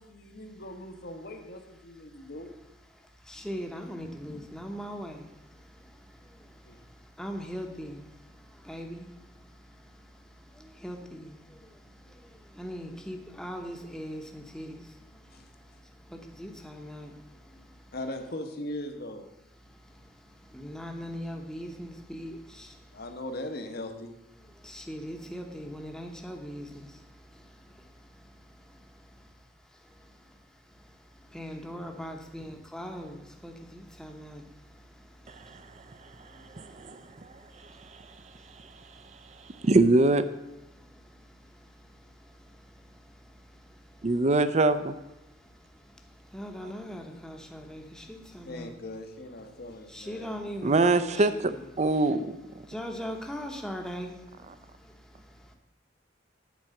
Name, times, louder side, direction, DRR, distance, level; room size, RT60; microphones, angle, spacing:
voice 1, 0.0-2.5 4.0-4.6 6.6-6.8 15.3-15.4 17.9-19.2 22.9-24.1 48.4-50.3, left 1 dB, 55° left, 6 dB, 1.1 m, -40 dB
voice 2, 3.2-17.9 19.7-23.0 24.5-29.3 30.0-30.4 30.7-39.7 40.7-44.1 45.2-48.7 49.9-51.6 52.6-55.5, equal, 5° left, 3 dB, 0.9 m, -42 dB
voice 3, 36.6-37.0 39.6-40.2 44.0-44.9 50.6-51.5 51.8-52.4, right 2 dB, 35° right, 12 dB, 0.5 m, -23 dB
9.2 x 4.7 x 7.5 m, 0.97 s
head